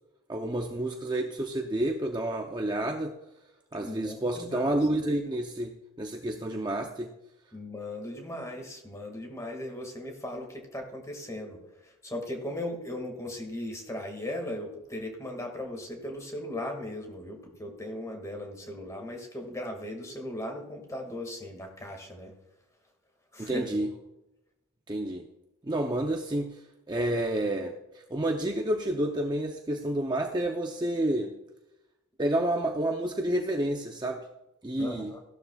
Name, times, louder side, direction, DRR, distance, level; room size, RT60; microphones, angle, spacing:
voice 1, 0.3-3.1 3.7-7.1 23.4-23.9 24.9-25.2 25.6-26.6 26.9-27.7 28.1-31.3 32.2-34.2 34.6-35.1, right 1 dB, 20° right, 2 dB, 0.6 m, -29 dB
voice 2, 3.8-4.7 7.5-22.3 23.3-23.7 34.8-35.2, left 1 dB, 15° left, 3 dB, 2.0 m, -38 dB
15.5 x 12.0 x 2.4 m, 0.91 s
head